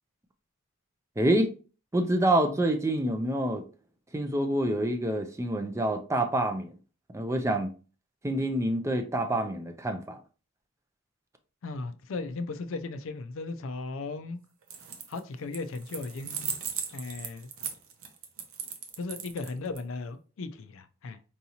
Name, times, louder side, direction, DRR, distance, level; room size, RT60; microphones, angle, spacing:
voice 1, 1.2-1.5 1.9-3.6 4.1-6.7 7.1-7.7 8.2-10.2, right 1 dB, 15° right, 0.4 m, -27 dB
voice 2, 11.6-14.4 15.1-16.6 16.9-17.5 19.0-21.2, left 3 dB, 65° left, 0.4 m, -36 dB
sound 1, 14.6-15.2 15.5-19.8, right 7 dB, 75° right, 0.7 m, -37 dB
4.7 x 2.7 x 2.8 m
head